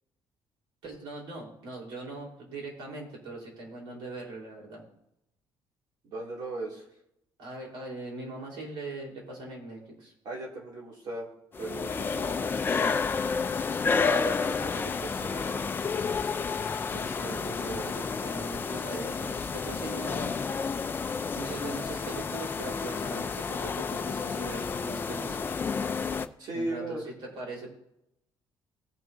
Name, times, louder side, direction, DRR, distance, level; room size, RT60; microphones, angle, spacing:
voice 1, 0.8-4.8 7.4-10.1 12.6-13.0 16.9-20.4 21.3-25.4 26.5-27.7, right 2 dB, 90° right, -2 dB, 4.2 m, -41 dB
voice 2, 6.0-6.9 10.2-11.3 11.6-12.5 13.9-15.8 17.6-17.9 26.4-27.1, right 2 dB, 60° right, -2 dB, 2.9 m, -37 dB
sound 1, 11.5-26.3, left 5 dB, 25° left, 0.5 m, -30 dB
18.5 x 6.2 x 2.8 m, 0.81 s
cardioid pair, 140°, 8 cm